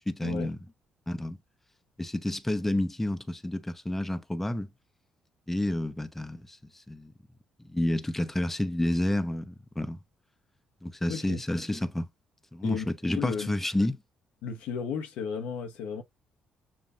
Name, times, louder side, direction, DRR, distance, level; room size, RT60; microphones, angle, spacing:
voice 1, 0.1-0.6 1.1-1.4 2.0-4.7 5.5-7.1 7.6-10.0 10.8-12.1 12.5-14.0, left 1 dB, 10° left, 0.8 m, -30 dB
voice 2, 11.1-11.4 12.6-12.9 13.2-13.5 14.4-16.0, left 6 dB, 80° left, 0.9 m, -34 dB
7.1 x 2.5 x 2.5 m
hypercardioid pair, 55°, 2 cm